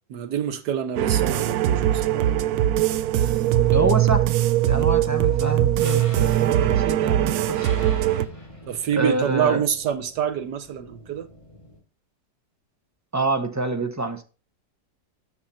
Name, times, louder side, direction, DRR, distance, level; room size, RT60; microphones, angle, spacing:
voice 1, 0.1-2.3 8.7-11.3, right 8 dB, 90° right, 1.6 m, -26 dB
sound 1, 1.0-8.3, right 12 dB, 75° right, 1.0 m, -21 dB
voice 2, 3.7-4.3 4.6-7.7 9.0-9.7 13.1-14.2, right 2 dB, 25° right, 0.3 m, -26 dB
sound 2, 5.2-11.8, left 1 dB, 20° left, 2.8 m, -44 dB
9.4 x 7.0 x 4.1 m
omnidirectional pair, 1.8 m